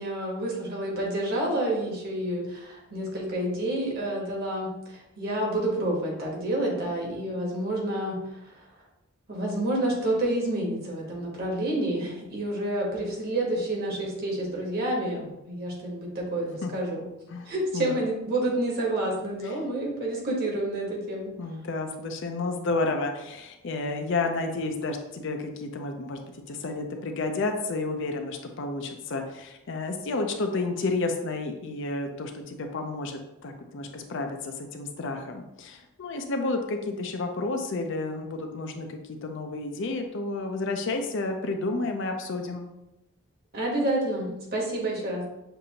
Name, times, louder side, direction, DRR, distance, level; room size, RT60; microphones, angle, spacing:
voice 1, 0.0-8.5 9.3-17.0 17.4-21.3 43.5-45.2, right 1 dB, 45° right, -2 dB, 1.1 m, -29 dB
voice 2, 17.3-18.0 19.4-19.5 21.4-42.7, left 3 dB, 55° left, 4 dB, 0.5 m, -31 dB
6.6 x 2.6 x 2.8 m, 0.93 s
head